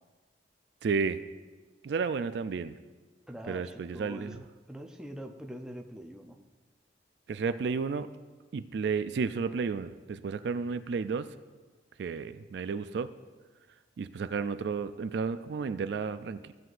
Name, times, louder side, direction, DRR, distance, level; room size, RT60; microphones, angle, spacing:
voice 1, 0.8-1.2 1.8-2.8 3.5-4.4 7.3-8.1 8.5-11.4 12.0-13.1 14.0-16.5, right 5 dB, 65° right, 12 dB, 0.3 m, -32 dB
voice 2, 3.3-6.4, equal, 5° right, 3 dB, 0.6 m, -44 dB
15.5 x 7.7 x 2.5 m, 1.3 s
head